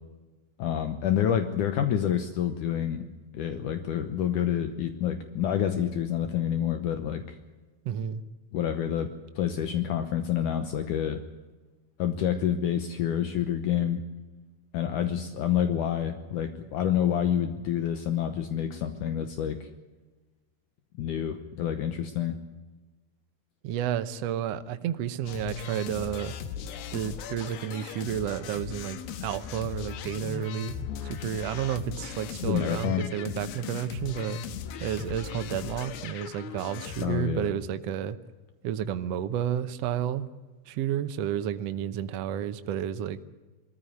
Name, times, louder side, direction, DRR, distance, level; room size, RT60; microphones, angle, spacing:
voice 1, 0.6-3.0 3.3-7.2 8.5-9.1 9.4-11.2 12.0-14.1 14.7-19.7 21.0-22.4 32.4-33.1 37.0-37.6, left 9 dB, 70° left, 8 dB, 2.3 m, -28 dB
voice 2, 7.8-8.2 23.6-26.3 26.9-34.4 34.8-38.2 38.6-40.3 40.7-43.2, right 10 dB, 85° right, 10 dB, 1.4 m, -31 dB
sound 1, 25.3-37.1, left 8 dB, 85° left, 3.1 m, -38 dB
21.0 x 14.5 x 9.4 m, 1.2 s
omnidirectional pair, 4.2 m